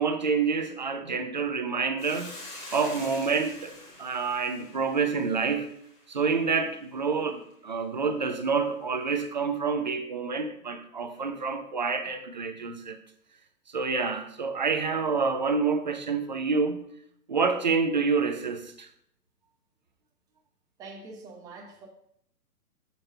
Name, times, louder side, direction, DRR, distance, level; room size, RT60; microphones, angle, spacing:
voice 1, 0.0-2.4 2.7-3.7 4.0-5.7 6.1-13.0 13.7-16.8 17.3-18.9, right 5 dB, 30° right, 0.4 m, -28 dB
Hiss, 2.0-6.5, left 2 dB, 15° left, 1.2 m, -46 dB
voice 2, 20.8-21.9, right 3 dB, 10° right, 0.8 m, -44 dB
6.8 x 4.4 x 6.4 m
hypercardioid pair, 150°, 48 cm